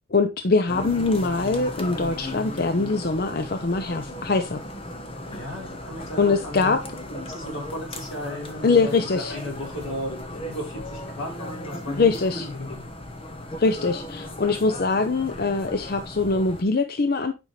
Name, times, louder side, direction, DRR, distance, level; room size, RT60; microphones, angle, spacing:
voice 1, 0.1-4.6 6.2-6.8 8.6-9.3 12.0-12.4 13.6-17.3, left 3 dB, 50° left, 0.6 m, -23 dB
sound 1, 0.7-16.6, left 1 dB, 25° left, 1.1 m, -36 dB
voice 2, 5.3-6.8 7.1-12.9, left 1 dB, 85° left, 4.0 m, -35 dB
9.0 x 5.4 x 3.2 m
head